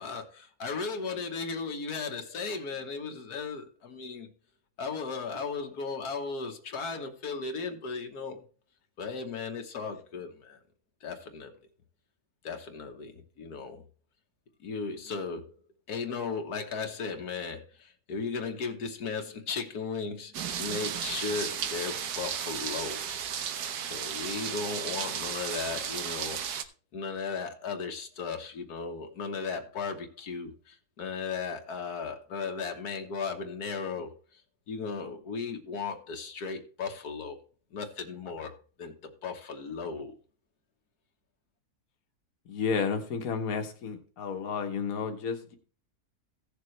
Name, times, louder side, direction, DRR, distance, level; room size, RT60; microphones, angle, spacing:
voice 1, 0.0-4.3 4.8-8.4 9.0-10.6 11.0-11.5 12.4-13.8 14.6-15.5 15.9-23.0 23.9-26.7 26.9-34.1 34.7-37.4 37.7-40.1, left 5 dB, 85° left, 1.8 m, -36 dB
sound 1, 20.3-26.6, right 8 dB, 90° right, 1.5 m, -34 dB
voice 2, 42.5-45.6, left 5 dB, 65° left, 1.6 m, -32 dB
16.5 x 6.8 x 3.2 m
omnidirectional pair, 1.6 m